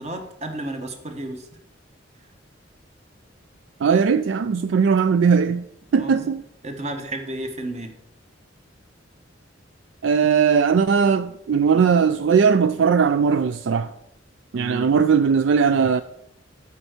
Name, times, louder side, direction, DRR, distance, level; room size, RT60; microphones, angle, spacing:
voice 1, 0.0-1.4 6.0-6.3 6.6-7.9 14.5-14.9, right 1 dB, 35° right, 1.2 m, -32 dB
voice 2, 3.8-5.7 5.9-6.4 10.0-13.9 14.5-16.0, right 6 dB, 70° right, 0.4 m, -19 dB
8.6 x 4.5 x 6.6 m
head